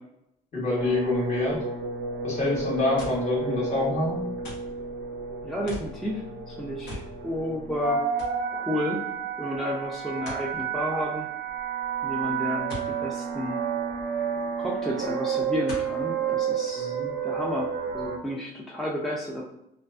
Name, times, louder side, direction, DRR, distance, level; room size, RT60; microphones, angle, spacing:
voice 1, 0.5-1.6 2.2-4.2 16.7-17.1, left 2 dB, 40° left, -4 dB, 1.1 m, -26 dB
sound 1, 0.8-18.2, right 6 dB, 65° right, 0.4 m, -31 dB
sound 2, 3.0-3.3 4.4-4.8 5.7-6.0 6.9-7.1 7.5-7.6 8.2-8.4 10.3-10.5 12.7-12.9 14.4-14.5 15.7-16.0 16.7-16.8, left 2 dB, 75° left, 0.9 m, -39 dB
voice 2, 5.4-8.1 8.5-9.0 9.4-11.3 12.0-13.6 14.6-16.9 17.2-19.4, left 1 dB, ahead, -3 dB, 0.3 m, -31 dB
2.3 x 2.3 x 2.3 m, 0.79 s
cardioid pair, 110°, 17 cm